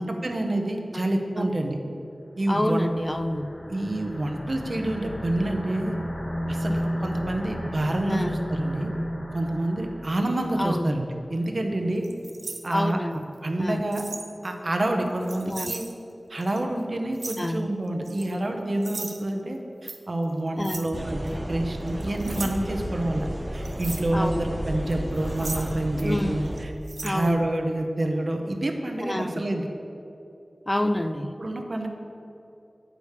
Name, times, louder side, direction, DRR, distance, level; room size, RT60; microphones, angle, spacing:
voice 1, 0.0-1.8 2.4-2.8 3.7-6.0 6.5-8.9 9.3-12.1 12.6-13.0 13.4-14.0 14.4-15.9 16.3-26.7 27.0-29.7 31.4-31.9, right 1 dB, 60° right, 3 dB, 0.9 m, -28 dB
sound 1, 2.5-11.1, equal, 65° left, 2.1 m, -33 dB
voice 2, 2.5-3.5 8.1-8.4 10.6-11.0 12.7-13.3 13.6-13.8 15.4-15.7 17.4-17.7 20.6-20.9 24.1-24.4 26.0-26.4 27.0-27.5 29.0-29.4 30.7-31.3, left 1 dB, 25° left, 9 dB, 0.3 m, -28 dB
sound 2, 12.0-13.2 13.9-14.3 14.7-15.9 16.4-16.6 17.1-17.5 18.0-18.3 18.8-19.2 19.9-20.0 20.6-20.9 21.3-21.4 21.9-22.5 23.6-24.1 24.9-26.2 26.5-26.6 26.9-27.1, right 3 dB, 85° right, 0.6 m, -37 dB
sound 3, 20.9-26.7, equal, 15° right, 0.6 m, -33 dB
8.2 x 5.1 x 6.5 m, 2.9 s
wide cardioid pair, 65°, 0 cm